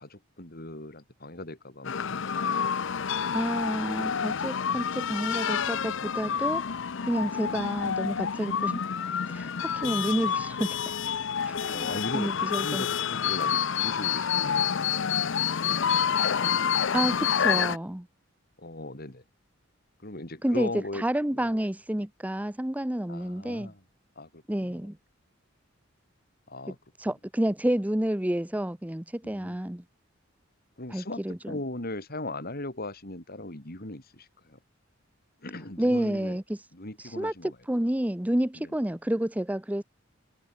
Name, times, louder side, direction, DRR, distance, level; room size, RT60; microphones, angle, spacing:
voice 1, 0.0-2.7 7.3-7.5 11.7-16.2 18.6-19.2 20.0-21.1 21.3-21.5 23.1-23.8 24.2-24.8 26.5-26.8 27.0-27.1 29.2-29.6 30.8-34.6 35.4-36.4 36.7-37.6 38.5-38.7, left 1 dB, 50° left, 5.4 m, -39 dB
sound 1, 1.8-17.8, left 7 dB, 65° left, 0.7 m, -28 dB
voice 2, 3.3-8.8 9.3-10.8 11.5-11.9 12.1-12.8 16.9-18.1 20.4-23.7 24.5-25.0 27.0-29.8 30.9-31.6 35.8-36.4 37.0-37.3 37.7-39.8, right 1 dB, 10° right, 0.7 m, -29 dB
head